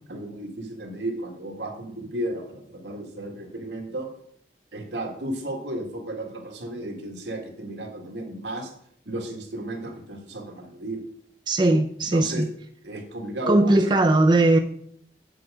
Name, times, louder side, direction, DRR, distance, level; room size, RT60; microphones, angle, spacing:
voice 1, 0.1-4.1 4.7-8.7 9.1-11.0 12.1-12.4 12.8-13.8, right 1 dB, 80° right, 2 dB, 1.9 m, -33 dB
voice 2, 11.5-12.5 13.5-14.6, right 2 dB, 25° right, 5 dB, 0.4 m, -19 dB
7.6 x 7.6 x 5.0 m, 0.66 s
head